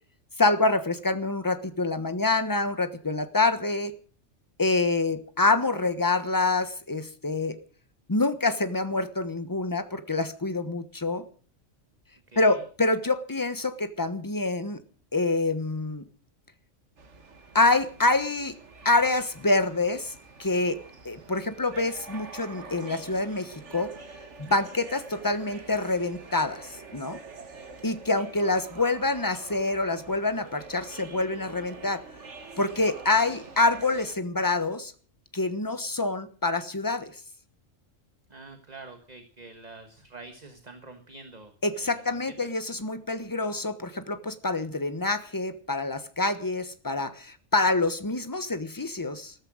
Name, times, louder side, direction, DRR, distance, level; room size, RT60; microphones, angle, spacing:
voice 1, 0.4-3.9 4.6-7.6 8.1-11.2 12.4-14.8 15.1-16.0 17.5-18.5 18.8-20.1 20.4-20.8 21.0-23.9 24.4-27.2 27.8-32.0 32.6-34.9 35.3-37.2 41.6-49.3, left 2 dB, 15° left, 11 dB, 1.1 m, -26 dB
voice 2, 12.3-12.6 38.3-42.3, right 3 dB, 35° right, 7 dB, 1.5 m, -47 dB
sound 1, 17.0-34.1, right 4 dB, 65° right, 2.0 m, -46 dB
14.0 x 13.5 x 6.3 m, 0.42 s
omnidirectional pair, 1.3 m